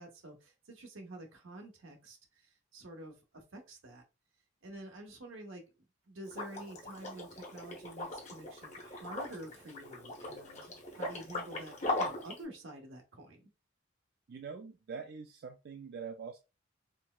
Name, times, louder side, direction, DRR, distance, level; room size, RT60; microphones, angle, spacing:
voice 1, 0.0-4.0 4.6-5.6 6.1-13.5, right 1 dB, 80° right, 1.0 m, -49 dB
Liquid, 6.3-12.4, left 2 dB, 35° left, 0.8 m, -39 dB
voice 2, 14.3-16.4, right 5 dB, 50° right, 0.3 m, -44 dB
4.3 x 2.0 x 2.3 m
head